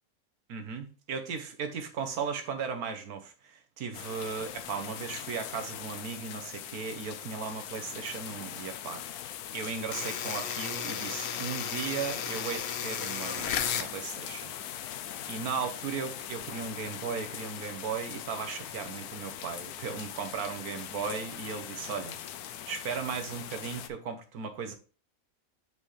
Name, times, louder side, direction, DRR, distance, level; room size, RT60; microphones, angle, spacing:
voice 1, 0.5-14.5 15.3-22.2 22.7-24.8, right 6 dB, 70° right, 1.5 m, -36 dB
sound 1, 3.9-23.9, left 10 dB, 75° left, 1.1 m, -41 dB
sound 2, 9.9-13.9, left 8 dB, 55° left, 0.8 m, -34 dB
7.6 x 5.1 x 3.2 m
omnidirectional pair, 1.6 m